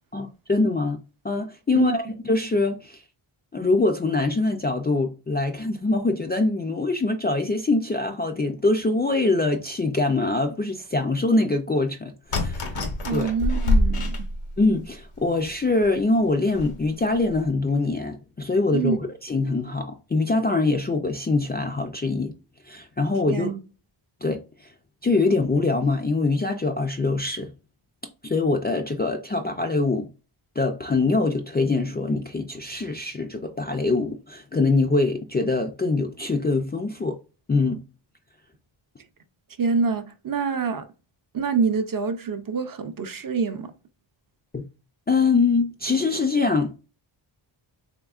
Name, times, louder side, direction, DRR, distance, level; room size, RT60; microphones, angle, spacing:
voice 1, 0.1-1.0 1.2-3.0 3.5-12.6 13.1-13.3 14.6-22.3 22.7-23.5 24.2-24.4 25.0-27.5 28.2-30.1 30.6-37.2 37.5-37.8 44.5-44.6 45.1-46.8, left 3 dB, 25° left, 0.3 m, -23 dB
sound 1, 12.3-14.8 15.4-15.5 15.8-15.9 16.5-16.8 17.2-17.4, left 2 dB, 85° left, 1.0 m, -25 dB
voice 2, 13.0-14.2 18.7-19.0 23.3-23.6 39.6-40.9 41.3-43.7, right 5 dB, 45° right, 0.5 m, -26 dB
3.6 x 3.4 x 2.4 m
wide cardioid pair, 115°, 50 cm